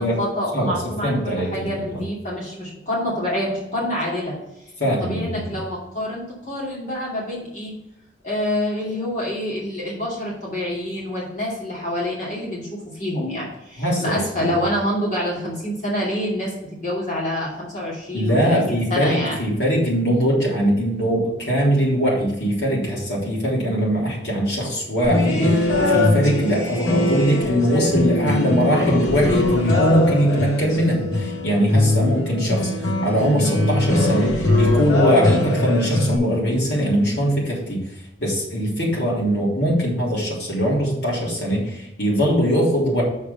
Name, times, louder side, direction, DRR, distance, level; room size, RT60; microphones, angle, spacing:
voice 1, 0.0-4.4 5.0-7.7 8.2-19.4, left 1 dB, 40° left, -5 dB, 2.5 m, -27 dB
voice 2, 1.0-2.0 4.8-5.4 13.8-14.5 18.1-43.0, equal, 60° left, -4 dB, 3.5 m, -21 dB
sound 1, 25.0-36.2, left 2 dB, 85° left, 2.2 m, -21 dB
6.9 x 4.8 x 6.9 m, 0.89 s
head